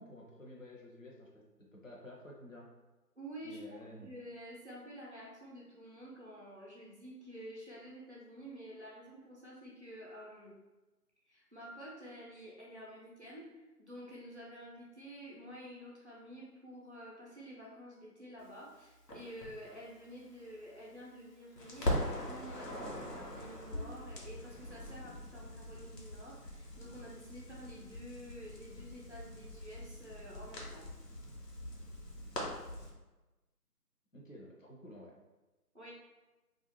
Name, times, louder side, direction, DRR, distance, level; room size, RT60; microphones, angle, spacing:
voice 1, 0.0-1.4 1.7-2.7 3.4-4.1 34.1-35.1, left 1 dB, 55° left, -3 dB, 0.6 m, -51 dB
voice 2, 3.2-3.6 4.0-10.5 11.3-30.9 35.7-35.9, equal, 45° right, -5 dB, 0.5 m, -50 dB
Crackle, 19.1-21.2 21.6-32.9, left 1 dB, 85° left, 1.0 m, -42 dB
2.4 x 2.0 x 3.0 m, 1.1 s
figure-of-eight pair, 175°, 48 cm